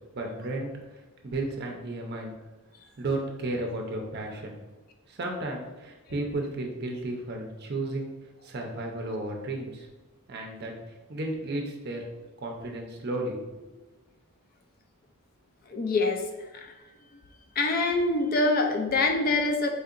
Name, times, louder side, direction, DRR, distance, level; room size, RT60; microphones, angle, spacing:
voice 1, 0.1-0.7 1.2-2.3 3.0-4.5 5.1-8.1 8.4-9.9 10.3-10.7 11.1-12.0 12.4-13.7, right 2 dB, 45° right, 1 dB, 0.5 m, -33 dB
voice 2, 15.7-16.8 17.6-19.7, left 2 dB, 40° left, 4 dB, 0.3 m, -25 dB
4.2 x 2.8 x 2.5 m, 1.1 s
head